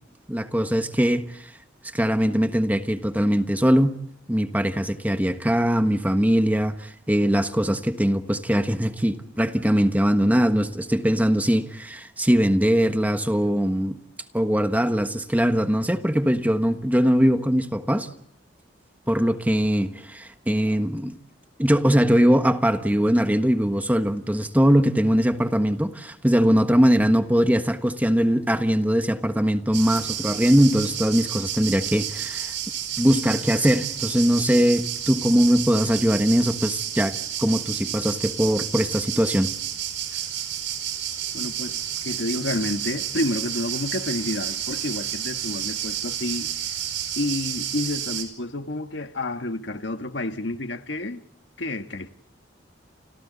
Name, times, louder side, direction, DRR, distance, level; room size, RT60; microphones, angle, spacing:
voice 1, 0.3-1.5 1.9-3.9 4.3-14.0 14.3-18.1 19.1-21.2 21.6-32.5 33.0-39.5, equal, 10° right, 1.3 m, -21 dB
sound 1, 29.7-48.2, right 10 dB, 85° right, 5.0 m, -31 dB
voice 2, 41.3-46.5 47.2-51.2 51.6-52.1, left 2 dB, 70° left, 1.6 m, -29 dB
30.0 x 26.0 x 4.1 m
head